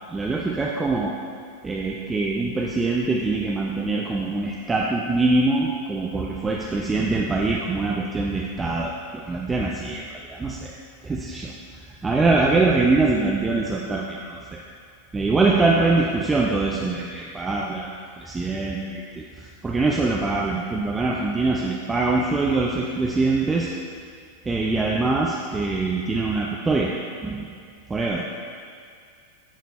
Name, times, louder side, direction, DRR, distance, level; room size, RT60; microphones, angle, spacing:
voice 1, 0.1-1.1 1.6-8.9 9.3-10.7 11.0-11.5 12.0-14.6 15.1-23.7 24.5-26.9 27.2-27.5 27.9-28.2, right 3 dB, 15° right, -3 dB, 0.6 m, -23 dB
10.5 x 4.1 x 4.2 m, 2.3 s
figure-of-eight pair, 90°, 0 cm